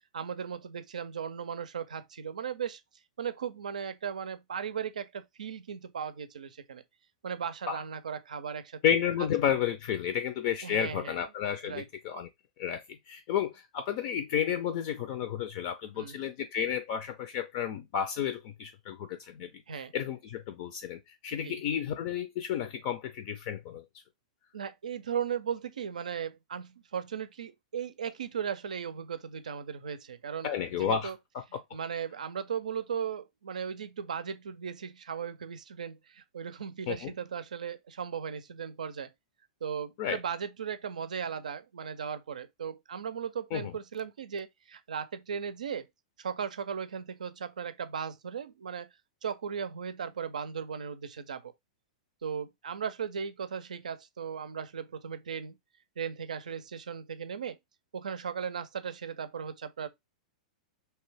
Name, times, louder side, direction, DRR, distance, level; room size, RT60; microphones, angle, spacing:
voice 1, 0.1-2.8 3.2-6.8 7.2-8.8 10.6-11.2 11.6-11.8 16.0-16.2 19.7-19.9 21.4-21.6 24.5-30.5 30.8-31.2 31.7-39.1 39.6-45.9 46.2-48.9 49.2-51.5 52.2-55.6 56.0-57.6 57.9-59.9, right 7 dB, 85° right, 0.5 m, -37 dB
voice 2, 8.8-12.3 12.6-19.5 19.9-23.8 30.4-31.1 36.9-37.1 40.0-40.2 43.5-43.7, left 9 dB, 50° left, 0.4 m, -31 dB
2.8 x 2.3 x 3.3 m
hypercardioid pair, 115°, 4 cm